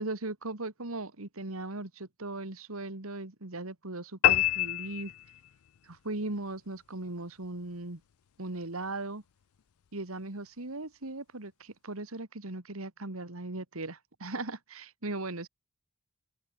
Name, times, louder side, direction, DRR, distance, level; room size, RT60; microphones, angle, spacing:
voice 1, 0.0-5.1 5.8-8.0 8.4-9.2 9.9-15.5, right 2 dB, 75° right, 2.3 m, -38 dB
sound 1, 4.2-5.8, left 14 dB, 85° left, 0.4 m, -26 dB
open air
head